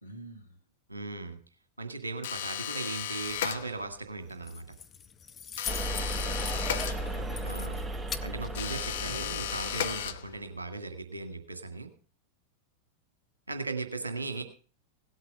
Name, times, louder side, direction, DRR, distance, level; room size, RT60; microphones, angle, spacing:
voice 1, 0.0-0.6 6.4-7.6 9.1-9.2 14.4-14.5, right 1 dB, 85° left, 5 dB, 1.8 m, -48 dB
voice 2, 0.9-1.4 1.8-4.7 7.3-7.9 8.2-11.9 13.5-14.4, right 3 dB, 80° right, 7 dB, 1.9 m, -37 dB
sound 1, 2.2-4.1 5.6-7.5 8.5-10.6, left 10 dB, 60° left, 0.8 m, -35 dB
Keys jangling, 4.2-9.3, left 7 dB, 20° left, 0.8 m, -43 dB
sound 2, 5.7-10.2, right 1 dB, 10° right, 1.1 m, -35 dB
17.0 x 8.1 x 5.3 m, 0.38 s
figure-of-eight pair, 90°, 0 cm